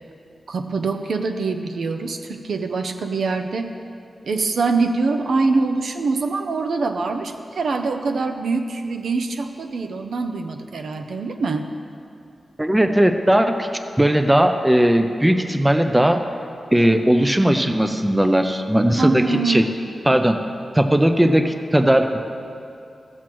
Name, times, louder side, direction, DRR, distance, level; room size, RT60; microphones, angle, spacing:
voice 1, 0.5-3.7 4.2-11.7 19.0-19.8, right 3 dB, 80° right, 6 dB, 0.6 m, -24 dB
voice 2, 12.6-13.7 14.0-16.2 16.7-19.7 20.1-20.4 20.8-22.2, right 1 dB, 10° right, 6 dB, 0.4 m, -17 dB
15.0 x 7.3 x 3.0 m, 2.5 s
wide cardioid pair, 175°, 0 cm